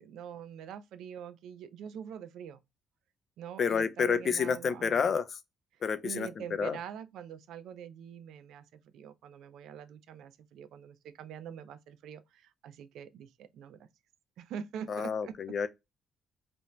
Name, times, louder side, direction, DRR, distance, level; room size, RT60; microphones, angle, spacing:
voice 1, 0.0-2.6 3.4-5.1 5.7-13.9 14.4-15.3, right 8 dB, 80° right, 0.3 m, -45 dB
voice 2, 3.6-5.2 5.8-6.3 6.6-6.8 14.9-15.7, left 6 dB, 50° left, 0.4 m, -29 dB
2.5 x 2.1 x 3.0 m
cardioid pair, 90°, 0 cm